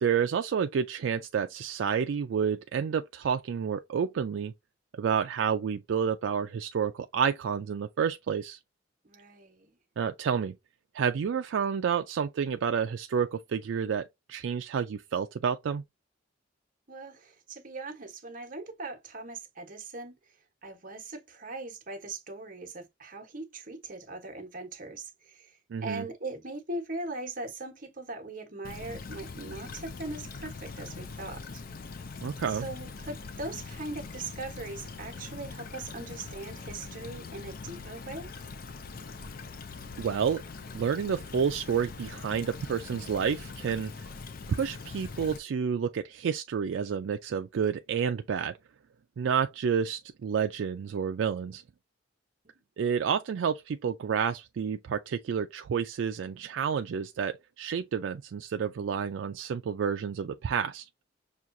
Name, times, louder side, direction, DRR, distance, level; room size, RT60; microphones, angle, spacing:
voice 1, 0.0-4.5 5.0-8.6 10.0-10.6 10.9-15.8 25.7-26.1 32.2-32.7 40.0-40.4 40.7-44.1 44.5-48.6 49.2-51.6 52.8-60.9, right 7 dB, 75° right, 0.3 m, -29 dB
voice 2, 9.0-9.7 16.9-20.2 20.6-31.6 32.6-38.3, right 2 dB, 45° right, 1.1 m, -40 dB
Stream / Trickle dribble, 28.6-45.4, left 4 dB, 50° left, 0.5 m, -42 dB
6.0 x 2.3 x 2.6 m
head